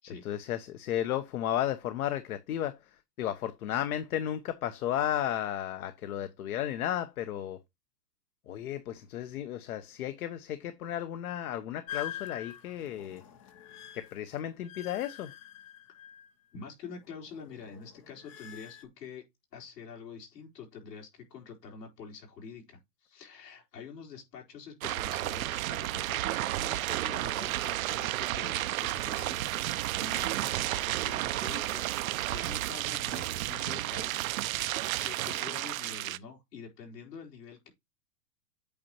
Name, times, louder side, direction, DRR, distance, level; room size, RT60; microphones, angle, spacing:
voice 1, 0.2-2.9 3.2-7.6 8.5-13.2 13.9-15.3, left 11 dB, 60° left, 1.0 m, -33 dB
sound 1, 11.9-16.6 16.9-18.9, left 10 dB, 20° left, 0.4 m, -45 dB
voice 2, 16.5-19.2 19.5-31.9 32.3-37.7, left 6 dB, 75° left, 4.1 m, -47 dB
sound 2, 24.8-36.2, right 15 dB, 60° right, 0.6 m, -32 dB
8.4 x 5.3 x 3.0 m
hypercardioid pair, 140°, 48 cm